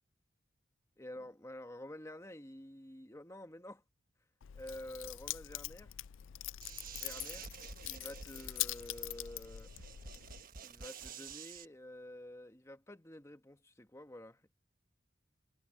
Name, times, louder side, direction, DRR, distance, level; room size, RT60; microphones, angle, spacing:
voice 1, 1.0-3.8 4.6-5.9 6.9-7.5 7.9-9.7 10.6-14.5, left 1 dB, 15° left, 1.6 m, -49 dB
Keys jangling, 4.4-10.4, left 15 dB, 85° left, 0.4 m, -43 dB
sound 1, 6.6-11.7, right 6 dB, 45° right, 1.3 m, -50 dB
head